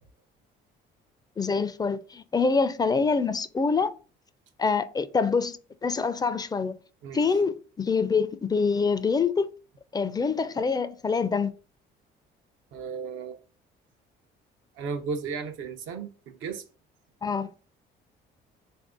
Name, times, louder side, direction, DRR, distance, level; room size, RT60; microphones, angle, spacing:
voice 1, 1.4-3.9 4.6-6.7 7.1-9.5 9.9-11.5 17.2-17.5, left 5 dB, 20° left, 0.4 m, -25 dB
voice 2, 12.7-13.4 14.8-16.6, right 5 dB, 80° right, 0.7 m, -34 dB
3.5 x 2.6 x 3.6 m
cardioid pair, 85°, 20 cm